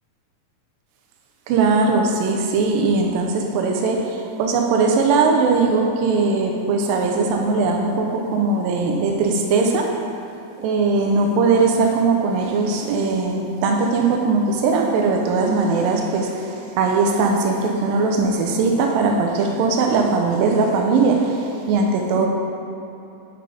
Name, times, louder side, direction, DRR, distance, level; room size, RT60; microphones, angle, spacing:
voice 1, 1.5-9.9 10.6-22.3, right 4 dB, 80° right, 2 dB, 2.3 m, -20 dB
6.8 x 5.3 x 5.0 m, 2.9 s
omnidirectional pair, 4.3 m